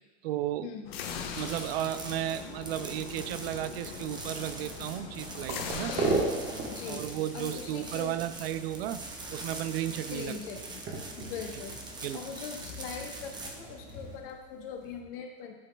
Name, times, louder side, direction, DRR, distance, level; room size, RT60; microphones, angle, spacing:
voice 1, 0.2-0.7 1.4-6.0 6.9-9.0 9.3-10.4 12.0-12.2, right 12 dB, 85° right, 13 dB, 0.5 m, -34 dB
sound 1, 0.8-6.9, left 7 dB, 85° left, 0.7 m, -41 dB
sound 2, 1.0-15.0, right 2 dB, 15° right, 0.6 m, -44 dB
sound 3, 1.3-14.2, right 3 dB, 35° right, 1.2 m, -39 dB
voice 2, 5.9-6.2 6.7-7.1 7.3-8.2 10.1-10.8 11.2-15.5, left 7 dB, 70° left, 3 dB, 1.1 m, -41 dB
11.0 x 4.1 x 2.2 m, 1.2 s
supercardioid pair, 125°, 29 cm